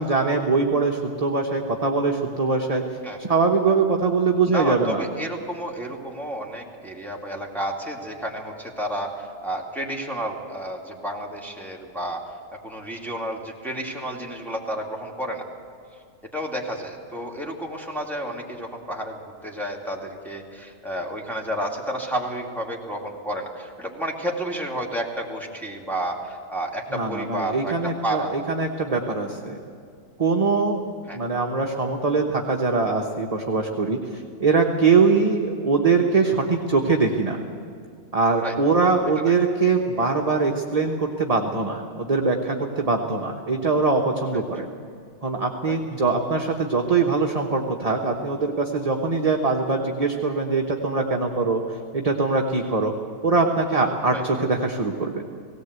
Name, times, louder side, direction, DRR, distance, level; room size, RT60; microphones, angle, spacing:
voice 1, 0.0-2.8 3.2-5.0 26.9-29.6 30.2-30.8 31.1-37.4 38.1-44.7 45.2-52.9 53.2-55.2, right 4 dB, 30° right, 1 dB, 1.1 m, -22 dB
voice 2, 4.5-12.2 12.6-15.4 16.3-27.7 28.0-28.3 31.1-31.2 38.4-38.5 39.2-39.4 45.7-45.8 54.1-54.2, right 1 dB, ahead, -2 dB, 2.5 m, -31 dB
18.0 x 18.0 x 8.1 m, 2.3 s
omnidirectional pair, 1.5 m